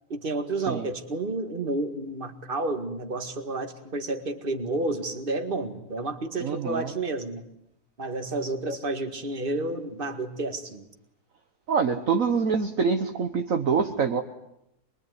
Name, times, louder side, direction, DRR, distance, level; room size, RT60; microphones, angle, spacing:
voice 1, 0.1-7.4 8.0-10.9, right 2 dB, 35° right, 7 dB, 2.1 m, -30 dB
voice 2, 6.4-6.9 8.7-8.8 11.7-14.2, right 5 dB, 55° right, 5 dB, 1.5 m, -25 dB
24.5 x 22.5 x 9.6 m, 0.79 s
omnidirectional pair, 1.7 m